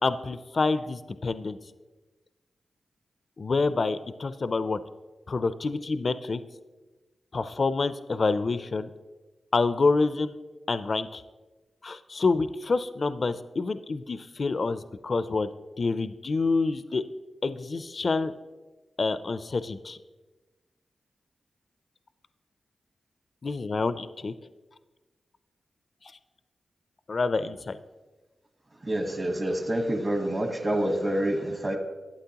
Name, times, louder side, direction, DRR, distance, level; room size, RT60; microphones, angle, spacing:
voice 1, 0.0-1.6 3.4-4.8 5.3-6.4 7.3-8.9 9.5-10.3 10.7-11.2 11.8-15.5 15.8-17.0 17.4-18.3 19.0-20.0 23.4-24.3 26.0-26.1 27.1-27.8, left 3 dB, 55° left, 12 dB, 0.4 m, -27 dB
voice 2, 28.9-31.8, right 1 dB, 40° right, 5 dB, 1.2 m, -27 dB
11.5 x 8.6 x 2.9 m, 1.2 s
cardioid pair, 65°, 0 cm